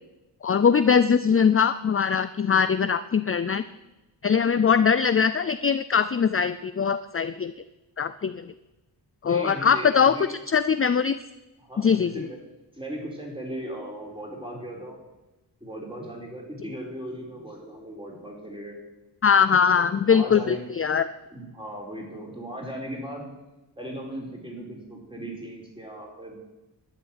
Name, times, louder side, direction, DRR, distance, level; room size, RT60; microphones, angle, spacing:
voice 1, 0.4-3.6 4.2-7.5 8.0-8.4 9.2-11.1 11.8-12.3 19.2-21.1, left 6 dB, 30° left, 13 dB, 0.5 m, -21 dB
voice 2, 9.3-10.3 11.6-12.4 12.7-15.0 15.6-18.8 19.3-20.6 21.3-23.3 23.8-26.4, right 1 dB, 10° right, -1 dB, 4.6 m, -37 dB
12.0 x 10.0 x 9.0 m, 1.0 s
wide cardioid pair, 135°, 43 cm